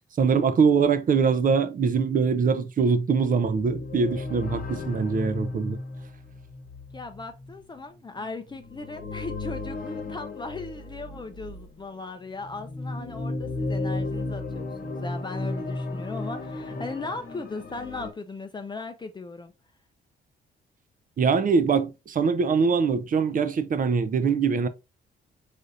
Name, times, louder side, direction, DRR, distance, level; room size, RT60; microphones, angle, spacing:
voice 1, 0.2-5.8 21.2-24.7, right 5 dB, 45° right, 0.7 m, -23 dB
sound 1, 3.3-11.8 12.4-18.1, left 2 dB, 45° left, 1.1 m, -34 dB
voice 2, 6.9-19.5, left 3 dB, 25° left, 0.6 m, -38 dB
5.1 x 3.9 x 2.6 m
cardioid pair, 90°, 20 cm